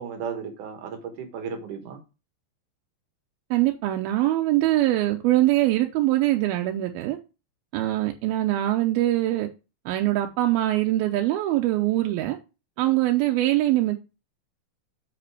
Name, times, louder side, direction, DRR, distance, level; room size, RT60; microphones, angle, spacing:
voice 1, 0.0-2.0 12.8-13.0, right 6 dB, 65° right, 2.6 m, -35 dB
voice 2, 3.5-7.2 7.7-9.5 9.9-12.4 12.8-14.0, right 15 dB, 90° right, 2.6 m, -23 dB
7.8 x 5.1 x 4.7 m
omnidirectional pair, 4.3 m